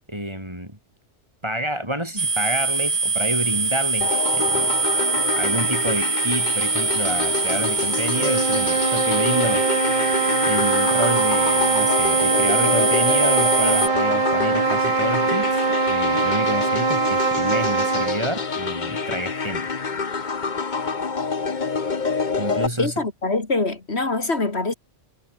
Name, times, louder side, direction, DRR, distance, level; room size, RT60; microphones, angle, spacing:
voice 1, 0.1-0.8 1.4-4.8 5.4-9.7 10.4-19.7 22.4-22.9, equal, 25° right, 7.0 m, -29 dB
sound 1, 2.2-13.9, right 4 dB, 65° right, 2.6 m, -23 dB
sound 2, 4.0-22.7, left 5 dB, 45° left, 1.4 m, -27 dB
sound 3, 8.0-18.3, right 3 dB, 45° right, 2.0 m, -22 dB
voice 2, 22.8-24.7, left 3 dB, 70° left, 3.2 m, -24 dB
omnidirectional pair, 1.2 m